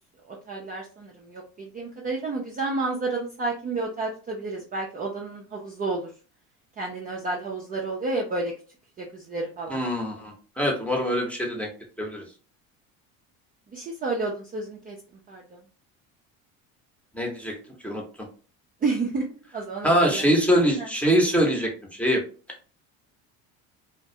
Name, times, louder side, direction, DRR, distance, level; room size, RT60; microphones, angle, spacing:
voice 1, 0.3-6.1 6.8-8.5 9.0-9.8 13.7-15.0 15.3-15.6 18.8-19.3 19.5-20.3 20.8-20.9, right 3 dB, 20° right, -2 dB, 0.5 m, -30 dB
voice 2, 9.7-11.7 12.0-12.2 17.1-17.6 17.8-18.0 19.8-22.2, equal, 5° left, -1 dB, 0.8 m, -23 dB
2.2 x 2.2 x 2.7 m, 0.37 s
supercardioid pair, 85°, 40 cm